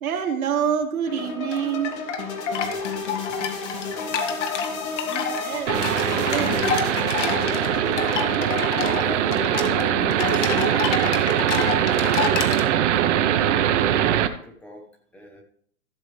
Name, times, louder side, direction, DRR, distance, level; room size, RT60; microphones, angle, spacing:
voice 1, 0.0-2.0 5.0-6.7, right 8 dB, 85° right, 3 dB, 2.2 m, -27 dB
sound 1, 1.1-10.7, left 5 dB, 75° left, 2.8 m, -32 dB
sound 2, 1.2-12.6, left 6 dB, 60° left, 1.7 m, -29 dB
voice 2, 2.4-3.5 3.8-4.4 7.1-8.2 8.9-9.5 9.9-11.2 12.2-15.4, equal, 5° left, 1 dB, 1.2 m, -44 dB
sound 3, 5.7-14.3, right 10 dB, 55° right, 1.0 m, -22 dB
15.5 x 7.0 x 3.3 m, 0.63 s
hypercardioid pair, 145°, 41 cm